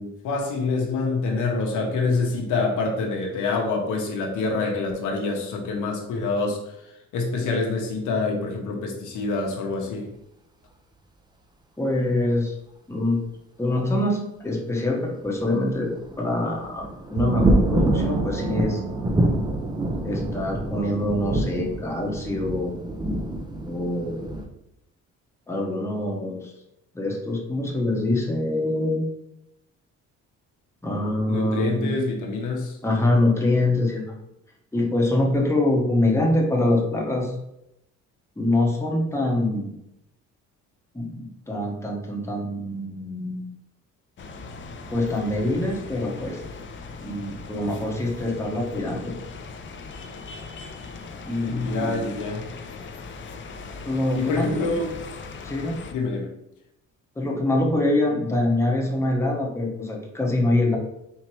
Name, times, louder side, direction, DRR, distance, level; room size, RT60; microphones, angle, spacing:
voice 1, 0.0-6.8 7.1-10.1 31.3-32.8 51.5-52.5 54.1-54.9 55.9-56.3, left 3 dB, 80° left, 1 dB, 1.0 m, -26 dB
voice 2, 11.8-12.5 12.9-13.2 13.6-15.9 16.2-18.8 20.0-22.8 23.6-24.2 25.5-26.5 26.9-29.0 30.8-32.0 32.8-34.2 34.7-37.4 38.4-39.7 40.9-43.6 44.9-46.4 47.0-49.2 51.3-52.1 53.8-54.7 55.4-55.8 57.2-60.8, left 1 dB, 10° left, -1 dB, 1.0 m, -24 dB
sound 1, 15.2-24.5, right 1 dB, 15° right, 0.6 m, -26 dB
sound 2, 17.2-20.7, right 7 dB, 80° right, 0.6 m, -31 dB
sound 3, 44.2-55.9, left 4 dB, 40° left, 0.5 m, -39 dB
4.4 x 2.8 x 3.1 m, 0.82 s
cardioid pair, 90°, 30 cm